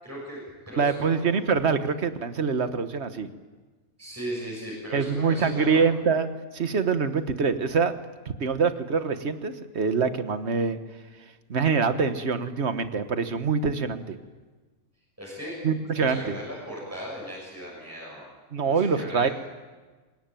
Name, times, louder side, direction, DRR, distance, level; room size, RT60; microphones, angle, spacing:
voice 1, 0.0-1.4 4.0-5.9 15.2-15.5 15.9-18.3 18.6-19.3, equal, 10° right, -5 dB, 6.6 m, -37 dB
voice 2, 0.8-3.3 4.9-8.0 8.2-10.8 11.5-14.2 15.6-16.4 18.5-19.3, right 5 dB, 50° right, 9 dB, 1.5 m, -25 dB
25.0 x 21.0 x 9.1 m, 1.3 s
omnidirectional pair, 1.5 m